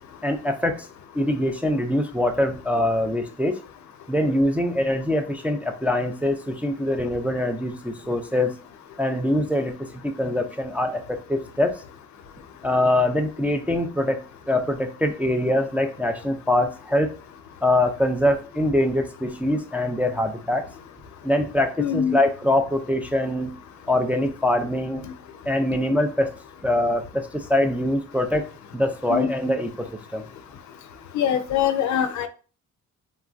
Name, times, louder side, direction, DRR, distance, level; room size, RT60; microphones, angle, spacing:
voice 1, 0.2-0.9 1.1-3.6 4.1-8.5 9.0-9.7 10.0-11.8 12.6-17.2 17.6-20.7 21.2-23.5 23.9-25.0 25.5-26.3 26.6-28.4 28.7-30.2, left 1 dB, 5° right, 4 dB, 0.3 m, -23 dB
voice 2, 21.8-22.2 29.1-29.3 31.1-32.3, left 9 dB, 70° left, 10 dB, 0.4 m, -23 dB
3.0 x 2.4 x 2.3 m, 0.36 s
cardioid pair, 90°, 30 cm